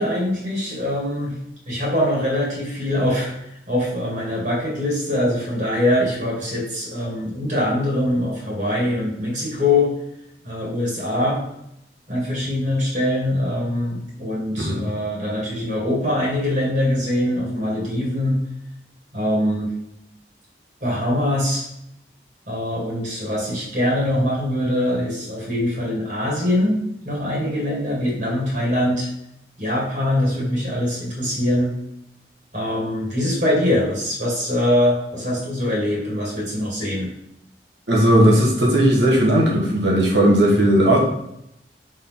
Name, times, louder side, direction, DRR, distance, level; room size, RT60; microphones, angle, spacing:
voice 1, 0.0-1.4 1.7-3.3 3.7-9.9 10.4-11.4 12.1-18.4 19.1-19.7 20.8-21.6 22.5-26.8 27.0-29.1 29.6-31.7 32.5-37.1, left 1 dB, 45° right, -4 dB, 2.5 m, -23 dB
voice 2, 37.9-41.0, right 1 dB, 80° right, -3 dB, 1.5 m, -16 dB
6.5 x 4.0 x 3.8 m, 0.79 s
head